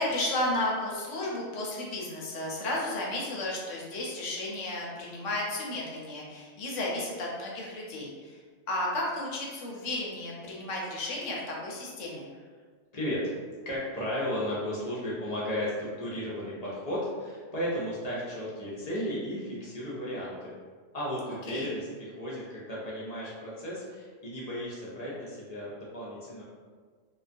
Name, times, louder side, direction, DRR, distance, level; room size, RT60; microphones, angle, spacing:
voice 1, 0.0-8.4 8.7-12.2 21.5-21.7, left 1 dB, 80° left, -3 dB, 0.9 m, -33 dB
voice 2, 13.6-20.5 20.9-26.4, equal, 50° left, -7 dB, 0.5 m, -34 dB
2.3 x 2.2 x 2.5 m, 1.5 s
omnidirectional pair, 1.3 m